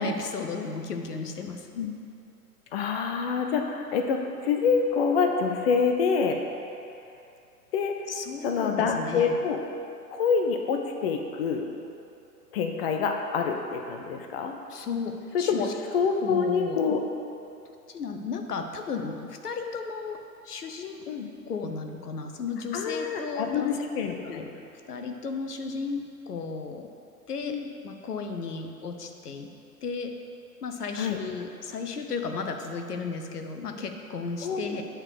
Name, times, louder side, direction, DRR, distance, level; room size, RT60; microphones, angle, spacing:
voice 1, 0.0-1.7 8.1-9.4 14.7-15.7 16.2-16.8 17.6-21.1 21.5-23.8 24.2-24.5 24.9-26.9 27.3-29.5 29.8-30.1 30.6-34.8, left 4 dB, 70° left, 5 dB, 0.9 m, -34 dB
voice 2, 2.7-6.4 7.7-7.9 8.4-9.6 10.1-11.7 12.5-14.5 15.3-15.7 15.9-17.0 21.1-21.3 22.7-24.4 27.5-27.7 31.0-31.2 34.4-34.8, left 5 dB, 40° left, 4 dB, 0.6 m, -26 dB
8.9 x 3.8 x 6.5 m, 2.7 s
figure-of-eight pair, 110°, 48 cm